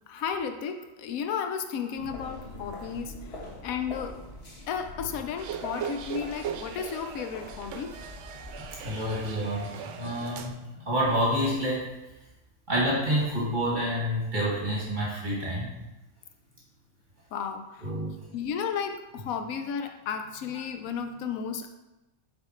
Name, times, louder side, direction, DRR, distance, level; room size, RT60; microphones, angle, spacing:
voice 1, 0.1-4.1 4.7-7.9 17.3-17.9 18.3-21.7, left 7 dB, 85° left, 6 dB, 1.1 m, -33 dB
sound 1, 1.9-8.9, left 1 dB, 50° left, 1.5 m, -43 dB
sound 2, 5.4-10.5, right 8 dB, 70° right, 0.9 m, -39 dB
voice 2, 8.6-9.7 10.0-11.9 12.7-15.7 17.8-18.1, equal, 35° right, -6 dB, 1.9 m, -28 dB
7.7 x 4.0 x 4.4 m, 1.0 s
omnidirectional pair, 1.4 m